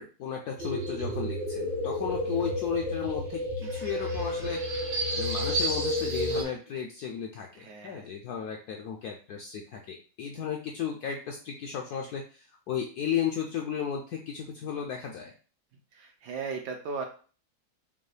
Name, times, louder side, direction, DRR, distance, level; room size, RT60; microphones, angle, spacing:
voice 1, 0.0-4.6 5.1-15.3, left 8 dB, 75° left, 1 dB, 0.9 m, -34 dB
sound 1, 0.6-6.4, equal, 55° right, 0.6 m, -31 dB
voice 2, 7.5-8.1 15.9-17.0, right 5 dB, 70° right, 3 dB, 1.0 m, -37 dB
5.3 x 2.2 x 3.2 m, 0.39 s
omnidirectional pair, 2.1 m